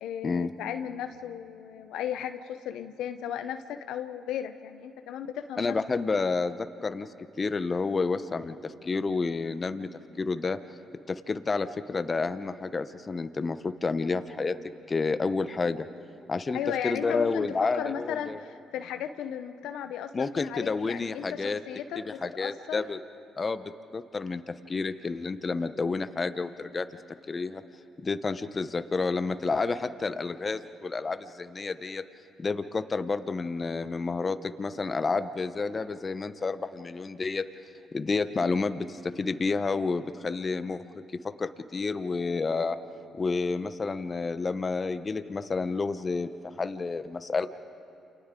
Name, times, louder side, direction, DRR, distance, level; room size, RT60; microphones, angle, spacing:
voice 1, 0.0-5.8 16.5-22.8, left 9 dB, 80° left, 8 dB, 0.8 m, -35 dB
voice 2, 5.6-7.1 7.4-9.9 10.2-10.6 11.1-14.5 14.9-15.9 16.3-16.6 16.8-18.4 20.1-21.6 22.0-23.0 23.4-26.9 27.3-27.6 28.0-32.0 32.4-37.4 37.9-40.8 41.2-42.8 43.1-46.3 46.6-47.5, left 4 dB, 35° left, 10 dB, 0.9 m, -30 dB
29.0 x 28.5 x 3.8 m, 2.6 s
supercardioid pair, 60°, 0 cm